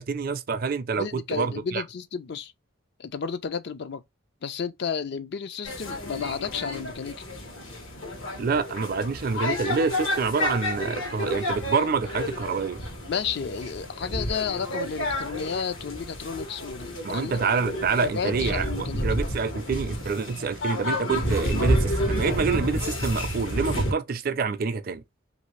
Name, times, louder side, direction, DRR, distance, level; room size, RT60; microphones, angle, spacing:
voice 1, 0.0-1.8 8.4-12.8 17.0-25.0, right 5 dB, 45° right, 0.4 m, -27 dB
voice 2, 1.0-2.5 3.0-4.0 4.4-7.2 13.1-17.4 18.0-19.1, left 6 dB, 55° left, 0.4 m, -32 dB
sound 1, 5.6-23.9, left 1 dB, 80° left, 1.2 m, -30 dB
3.2 x 2.6 x 3.1 m
head